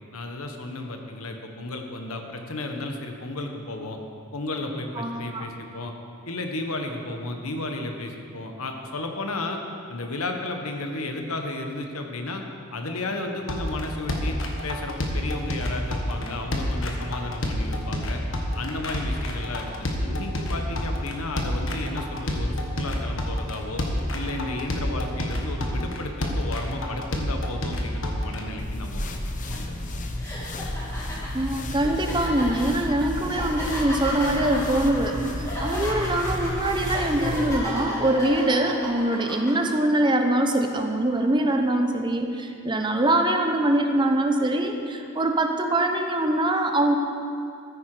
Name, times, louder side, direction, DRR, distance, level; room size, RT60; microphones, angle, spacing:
voice 1, 0.1-4.0 4.3-5.9 6.2-9.6 9.9-12.4 12.7-18.2 18.5-23.8 24.1-29.1 29.6-29.7, left 2 dB, 85° left, 4 dB, 1.3 m, -33 dB
voice 2, 5.0-5.4 31.3-47.0, right 1 dB, 20° right, 4 dB, 0.8 m, -23 dB
sound 1, 13.5-28.4, left 1 dB, 65° left, 1.4 m, -28 dB
sound 2, 28.6-37.6, left 1 dB, 35° left, 0.8 m, -32 dB
sound 3, 29.5-29.7 30.2-39.5, equal, 15° left, 2.4 m, -34 dB
14.0 x 9.9 x 4.9 m, 2.5 s
head